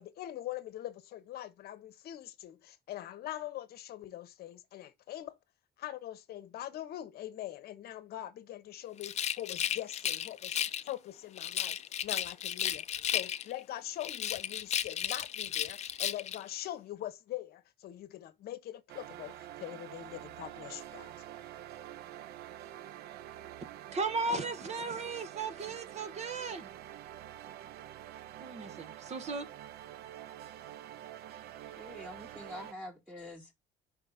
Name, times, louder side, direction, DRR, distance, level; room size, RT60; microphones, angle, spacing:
voice 1, 0.0-5.3 5.8-10.6 10.9-11.8 12.0-12.8 13.1-21.1, left 13 dB, 65° left, 0.9 m, -42 dB
Rattle, 9.0-10.9 11.4-13.6 14.0-16.4, left 10 dB, 40° left, 0.5 m, -34 dB
sound 1, 18.9-32.7, right 12 dB, 70° right, 0.5 m, -47 dB
voice 2, 23.9-26.7 28.4-29.5, right 3 dB, 40° right, 1.0 m, -36 dB
voice 3, 31.8-33.5, left 1 dB, 5° right, 1.2 m, -46 dB
5.1 x 3.9 x 4.9 m
cardioid pair, 110°, 17 cm